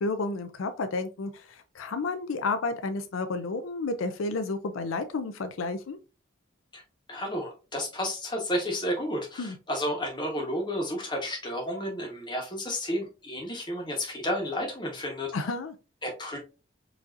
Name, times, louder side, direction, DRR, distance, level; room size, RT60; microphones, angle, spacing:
voice 1, 0.0-6.0 9.4-9.6 15.3-15.7, left 3 dB, 85° left, 9 dB, 0.5 m, -31 dB
voice 2, 7.1-15.3 16.0-16.4, equal, 20° left, 0 dB, 1.0 m, -31 dB
4.8 x 2.7 x 2.5 m, 0.31 s
head